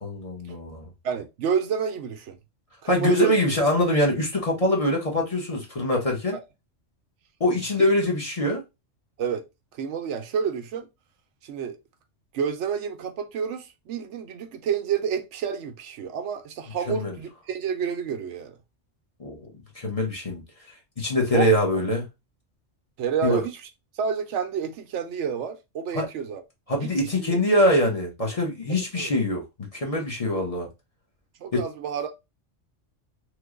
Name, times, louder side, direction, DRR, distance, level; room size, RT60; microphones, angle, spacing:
voice 1, 0.0-0.9 2.9-6.4 7.4-8.6 16.9-17.1 19.2-19.5 19.7-20.4 21.0-22.0 23.2-23.4 25.9-26.1 26.7-29.4 29.7-30.7 31.5-31.6, left 1 dB, 35° left, 0.9 m, -23 dB
voice 2, 1.0-2.4 2.8-3.3 6.3-6.4 7.8-7.9 9.2-10.9 11.4-11.8 12.3-18.6 21.3-21.5 23.0-23.6 23.9-26.4 26.8-27.4 28.7-29.1 30.0-30.1 31.4-32.1, right 7 dB, 75° right, 0.9 m, -29 dB
3.1 x 2.1 x 3.6 m
omnidirectional pair, 1.3 m